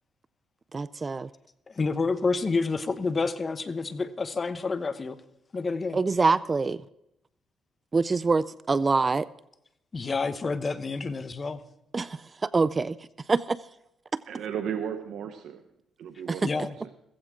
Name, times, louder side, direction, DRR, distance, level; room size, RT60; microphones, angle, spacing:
voice 1, 0.7-1.3 5.9-6.8 7.9-9.3 11.9-13.0 13.3-13.6 14.1-14.2 16.3-16.5, right 4 dB, 30° right, 17 dB, 0.4 m, -25 dB
voice 2, 1.7-5.2 5.5-6.0 9.9-11.6 16.4-16.8, left 4 dB, 35° left, 12 dB, 1.0 m, -29 dB
voice 3, 14.3-15.6 16.0-16.7, right 8 dB, 75° right, 6 dB, 1.0 m, -34 dB
16.0 x 15.5 x 3.7 m, 0.82 s
cardioid pair, 90°, 0 cm